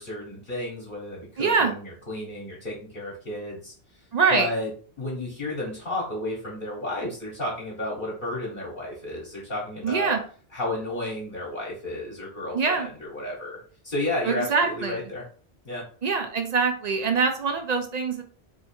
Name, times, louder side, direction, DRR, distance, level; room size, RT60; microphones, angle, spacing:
voice 1, 0.0-3.7 4.3-4.7 5.0-10.2 10.5-13.6 13.8-15.2 15.6-15.8, left 1 dB, 55° left, -5 dB, 1.1 m, -32 dB
voice 2, 1.4-1.7 4.1-4.5 9.8-10.2 12.5-12.9 14.3-15.0 16.0-18.2, right 5 dB, 55° right, 5 dB, 0.5 m, -24 dB
2.8 x 2.3 x 4.2 m, 0.43 s
omnidirectional pair, 1.1 m